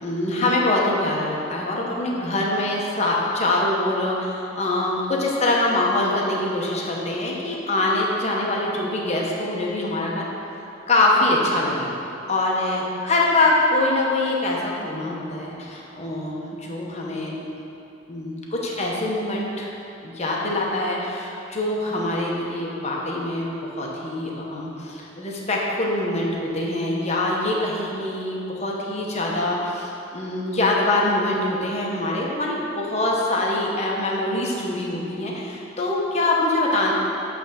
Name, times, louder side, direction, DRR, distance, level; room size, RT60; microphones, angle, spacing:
voice 1, 0.0-10.2 10.9-11.9 12.3-17.4 18.1-19.7 20.0-36.9, left 2 dB, 35° left, -3 dB, 1.0 m, -24 dB
8.1 x 3.4 x 6.3 m, 2.8 s
head